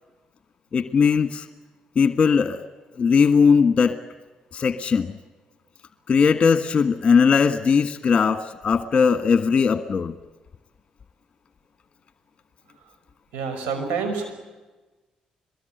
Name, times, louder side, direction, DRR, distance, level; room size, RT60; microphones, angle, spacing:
voice 1, 0.7-1.5 1.9-2.6 3.0-3.9 4.5-5.1 6.1-10.1, left 6 dB, 40° left, 9 dB, 1.5 m, -19 dB
voice 2, 13.3-14.3, right 5 dB, 90° right, 7 dB, 6.1 m, -27 dB
23.0 x 20.5 x 9.3 m, 1.2 s
supercardioid pair, 75°, 2 cm